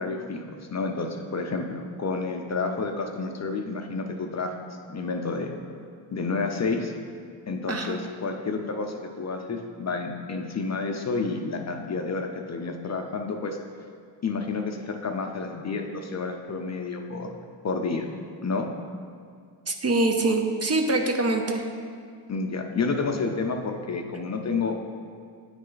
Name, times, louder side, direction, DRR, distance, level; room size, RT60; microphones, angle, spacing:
voice 1, 0.0-4.5 4.9-5.5 6.1-6.9 7.5-13.6 14.2-17.3 17.6-18.1 18.4-18.7 22.3-24.8, left 4 dB, 35° left, 4 dB, 0.6 m, -30 dB
voice 2, 7.7-8.0 19.7-21.7, right 2 dB, 35° right, 4 dB, 0.6 m, -24 dB
9.1 x 3.2 x 3.9 m, 2.2 s
cardioid pair, 60°, 47 cm